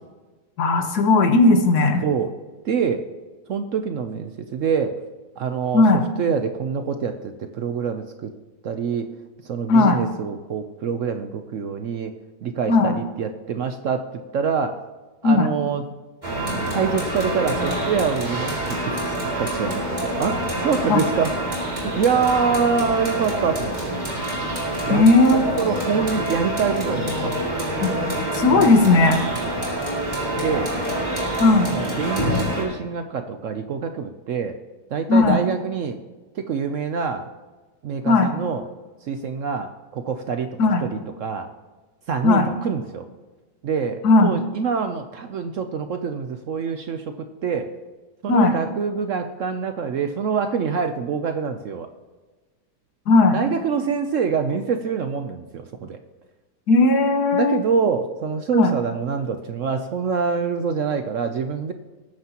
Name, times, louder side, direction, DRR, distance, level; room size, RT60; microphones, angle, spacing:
voice 1, 0.6-2.0 5.7-6.1 9.7-10.0 12.7-13.0 15.2-15.5 20.9-21.0 24.9-25.5 27.8-27.9 28.3-29.2 31.4-31.7 35.1-35.4 38.1-38.3 40.6-40.8 42.2-42.5 44.0-44.3 48.3-48.6 53.1-53.4 56.7-57.6 58.5-58.7, left 3 dB, 65° left, 6 dB, 1.7 m, -16 dB
voice 2, 2.6-3.0 3.5-5.0 5.4-8.3 8.6-9.1 9.4-12.1 12.4-14.1 14.3-14.8 15.2-15.8 16.6-21.3 21.6-23.9 24.8-25.0 25.3-27.7 28.5-28.7 29.3-29.6 30.3-30.7 31.7-34.5 34.9-36.0 36.3-37.3 37.8-38.6 39.1-41.5 42.1-43.1 43.6-47.7 48.2-51.9 53.3-56.0 57.3-61.7, right 6 dB, 60° right, 8 dB, 0.8 m, -25 dB
sound 1, 16.2-32.6, right 1 dB, 25° right, 2.7 m, -26 dB
19.0 x 9.4 x 2.9 m, 1.3 s
omnidirectional pair, 1.8 m